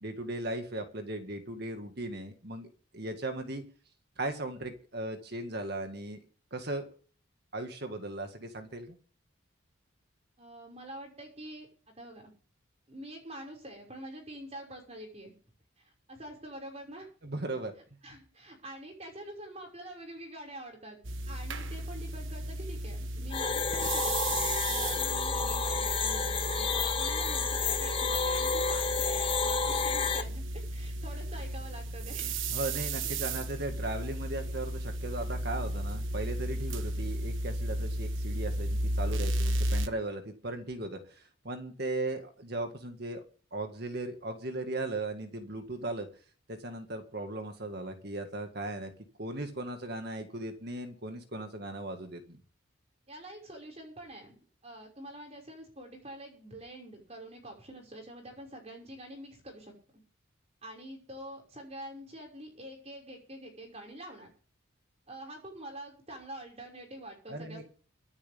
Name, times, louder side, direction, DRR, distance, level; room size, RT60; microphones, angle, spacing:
voice 1, 0.0-2.7 2.9-3.6 4.2-6.2 6.5-6.9 7.5-9.0 17.2-17.7 32.5-43.2 43.5-46.1 46.5-48.9 49.2-52.4 67.3-67.6, right 2 dB, 50° right, 6 dB, 2.0 m, -37 dB
voice 2, 10.4-11.7 12.0-12.3 12.9-15.3 15.8-17.1 18.0-21.0 21.3-32.4 53.1-59.7 60.6-64.3 65.1-67.6, right 1 dB, 30° right, 1 dB, 5.8 m, -46 dB
sound 1, 21.0-39.9, right 1 dB, 70° right, 1.3 m, -34 dB
sound 2, 23.3-30.2, left 5 dB, 25° left, 1.2 m, -30 dB
23.5 x 9.7 x 3.6 m, 0.41 s
head